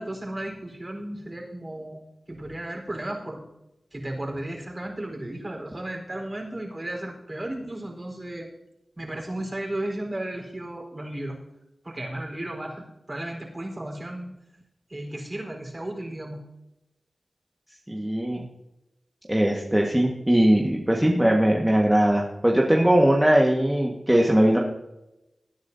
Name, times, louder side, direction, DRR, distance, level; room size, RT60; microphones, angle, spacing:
voice 1, 0.0-2.0 2.3-3.4 3.9-8.5 9.0-11.3 11.8-14.3 14.9-16.4, right 1 dB, 35° right, 1 dB, 4.4 m, -34 dB
voice 2, 17.9-18.4 19.3-24.6, right 1 dB, 10° right, -1 dB, 1.6 m, -20 dB
20.5 x 9.5 x 2.8 m, 0.93 s
cardioid pair, 45°, 0 cm